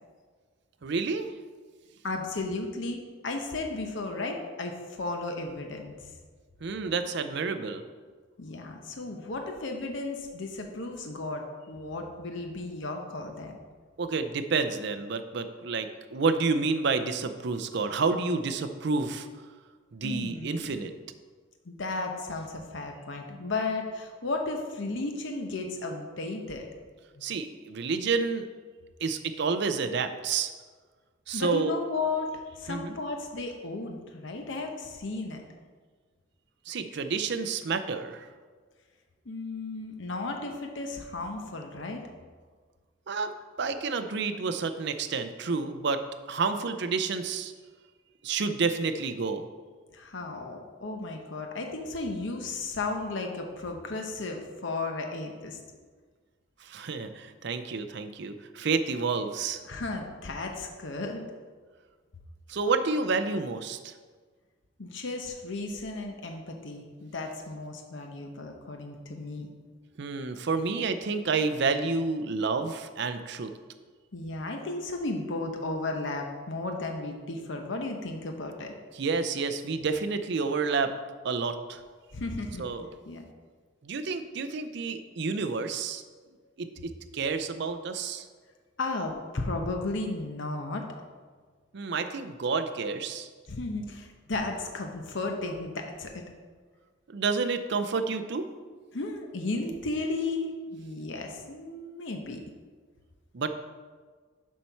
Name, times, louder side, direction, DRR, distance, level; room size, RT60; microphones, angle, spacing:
voice 1, 0.8-1.3 6.6-7.8 14.0-19.3 19.9-20.9 27.2-28.5 29.0-30.5 31.3-31.8 32.7-32.9 36.7-38.3 43.1-43.3 43.6-46.0 46.3-47.5 48.2-49.5 56.6-59.6 62.5-63.9 70.0-73.5 78.9-80.9 81.2-81.8 82.6-82.9 83.8-86.0 86.6-88.3 91.7-93.3 97.1-98.5 103.3-103.5, right 4 dB, 60° right, 8 dB, 0.5 m, -29 dB
voice 2, 2.0-6.1 8.4-13.6 20.0-20.8 21.7-26.7 27.2-27.3 31.3-35.4 39.2-42.0 49.9-55.6 59.6-61.2 64.8-69.5 74.1-78.7 82.1-82.6 83.1-83.3 88.8-90.9 93.5-96.2 98.9-102.4, left 2 dB, 65° left, 3 dB, 0.8 m, -34 dB
7.3 x 4.4 x 5.6 m, 1.5 s
head